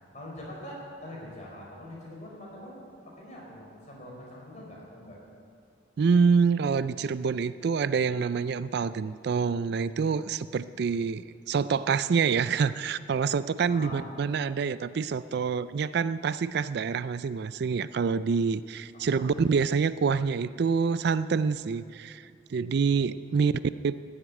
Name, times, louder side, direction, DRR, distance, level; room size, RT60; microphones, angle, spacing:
voice 1, 0.1-5.2 13.7-14.1 19.0-19.3 23.3-23.6, left 1 dB, 40° left, -3 dB, 4.9 m, -44 dB
voice 2, 6.0-22.2 22.5-23.5 23.8-24.0, right 5 dB, 60° right, 15 dB, 0.4 m, -26 dB
14.5 x 8.1 x 9.9 m, 2.3 s
head